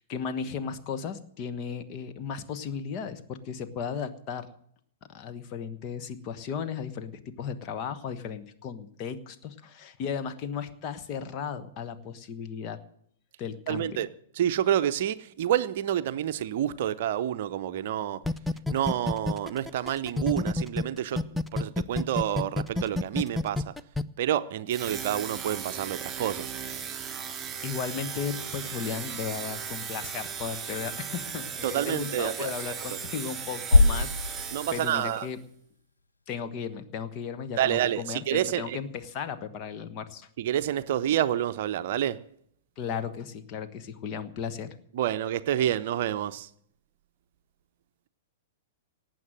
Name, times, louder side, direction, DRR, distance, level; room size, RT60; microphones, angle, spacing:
voice 1, 0.0-4.5 5.1-12.8 13.4-14.0 27.6-35.4 36.3-40.3 42.8-44.7, left 7 dB, 35° left, 1.3 m, -35 dB
voice 2, 13.7-14.1 14.4-18.2 18.7-23.7 24.2-26.5 31.6-32.5 34.5-35.3 37.6-38.8 40.4-42.2 44.9-46.5, right 11 dB, 50° right, 0.7 m, -28 dB
sound 1, 18.2-20.8 21.2-24.0, left 2 dB, 5° left, 0.5 m, -28 dB
sound 2, 24.7-35.3, right 7 dB, 20° right, 3.4 m, -37 dB
sound 3, 33.7-35.8, left 2 dB, 80° left, 0.5 m, -23 dB
18.5 x 7.9 x 7.6 m
figure-of-eight pair, 105°, 0 cm